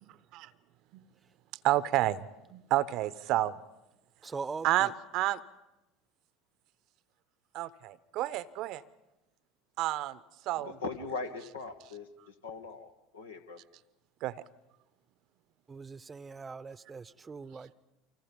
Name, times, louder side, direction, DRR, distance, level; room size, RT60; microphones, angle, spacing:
voice 1, 1.6-2.2 2.5-3.5 4.6-5.4 7.5-8.8 9.8-10.2 10.5-10.7 14.2-14.3, right 15 dB, 55° right, 18 dB, 0.8 m, -29 dB
voice 2, 4.2-4.9 15.7-17.7, right 4 dB, 20° right, 18 dB, 0.8 m, -41 dB
voice 3, 10.5-13.6, left 3 dB, 80° left, 6 dB, 1.5 m, -40 dB
30.0 x 25.0 x 5.3 m, 0.96 s
figure-of-eight pair, 70°, 0 cm